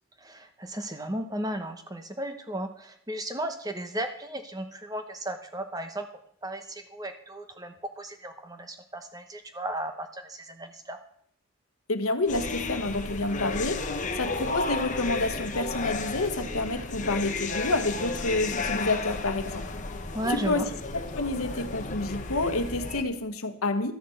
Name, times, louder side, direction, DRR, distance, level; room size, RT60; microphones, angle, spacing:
voice 1, 0.2-6.1 6.4-11.0 20.1-20.7, right 1 dB, 15° right, 7 dB, 1.0 m, -35 dB
voice 2, 11.9-19.7 20.3-20.6 20.9-23.9, left 2 dB, 90° left, 9 dB, 1.2 m, -29 dB
sound 1, 12.3-23.0, left 3 dB, 35° left, 1.0 m, -33 dB
12.5 x 6.3 x 7.8 m, 0.65 s
head